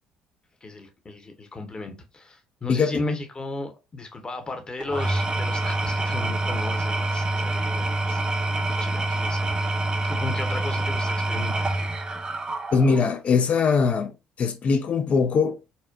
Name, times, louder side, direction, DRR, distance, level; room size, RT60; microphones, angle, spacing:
voice 1, 0.6-9.8 10.0-11.9, left 2 dB, 25° left, 1.0 m, -35 dB
voice 2, 2.7-3.0 12.7-14.1 14.4-15.6, left 5 dB, 45° left, 0.5 m, -21 dB
Engine / Tools, 4.8-13.1, right 2 dB, 25° right, 0.5 m, -26 dB
4.2 x 2.1 x 2.5 m
hypercardioid pair, 50°, 3 cm